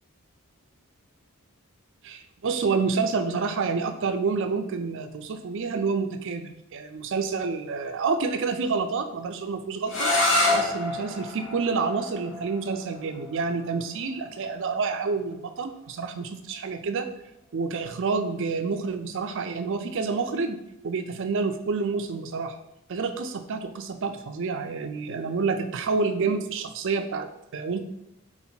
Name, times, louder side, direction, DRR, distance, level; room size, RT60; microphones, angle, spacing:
voice 1, 2.0-10.1 10.5-17.1 17.5-20.6 20.8-22.6 22.9-27.8, right 4 dB, 60° right, 8 dB, 0.4 m, -28 dB
sound 1, 9.9-15.6, left 2 dB, 60° left, 1.0 m, -28 dB
4.3 x 2.8 x 4.3 m, 0.83 s
head